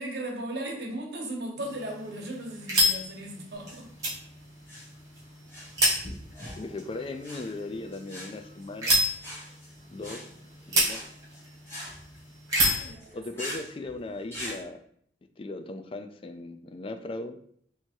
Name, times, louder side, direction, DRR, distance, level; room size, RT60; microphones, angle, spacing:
voice 1, 0.0-3.9 12.7-13.4, right 1 dB, 65° right, 0 dB, 1.1 m, -37 dB
sound 1, 1.6-12.9, equal, 20° right, 1.6 m, -31 dB
sound 2, 3.5-14.6, equal, 15° left, 1.4 m, -42 dB
voice 2, 6.5-9.0 9.9-10.3 10.7-11.0 13.1-14.8 15.4-17.4, left 2 dB, 30° left, 8 dB, 0.3 m, -38 dB
3.4 x 3.0 x 4.5 m, 0.66 s
head